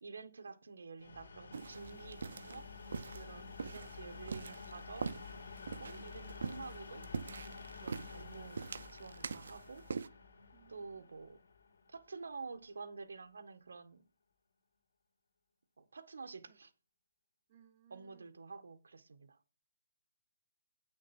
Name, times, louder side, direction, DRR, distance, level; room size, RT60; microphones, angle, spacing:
voice 1, 0.0-2.7 3.1-5.1 5.8-7.1 7.8-9.8 10.7-11.4 11.9-14.0 15.8-16.7 17.9-19.4, right 4 dB, 85° right, 1.5 m, -49 dB
sound 1, 1.0-12.6, left 4 dB, 75° left, 2.4 m, -51 dB
sound 2, 1.5-10.1, right 5 dB, 60° right, 0.7 m, -45 dB
voice 2, 10.5-11.2 16.5-16.6 17.5-18.3, right 9 dB, 25° right, 0.8 m, -65 dB
9.4 x 6.3 x 6.0 m
hypercardioid pair, 175°, 0 cm